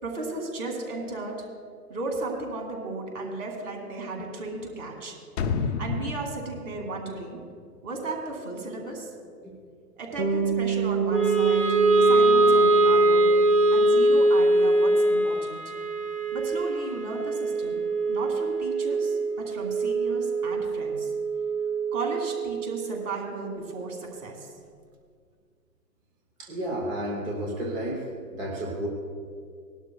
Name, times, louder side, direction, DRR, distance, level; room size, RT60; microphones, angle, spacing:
voice 1, 0.0-1.5 1.9-5.2 5.6-7.4 7.8-9.1 10.0-11.7 12.0-13.3 13.7-15.6 16.3-17.8 18.1-21.1 21.9-24.5, right 3 dB, 25° right, 1 dB, 2.4 m, -35 dB
sound 1, 5.4-8.2 8.5-8.6, left 5 dB, 40° left, 0.8 m, -31 dB
Bass guitar, 10.2-14.4, right 6 dB, 90° right, 1.7 m, -29 dB
Wind instrument woodwind instrument, 11.1-23.3, right 2 dB, 70° right, 2.3 m, -23 dB
voice 2, 26.4-28.0 28.3-28.9, right 1 dB, 10° right, -2 dB, 0.7 m, -31 dB
19.5 x 12.0 x 2.3 m, 2.1 s
hypercardioid pair, 145°, 49 cm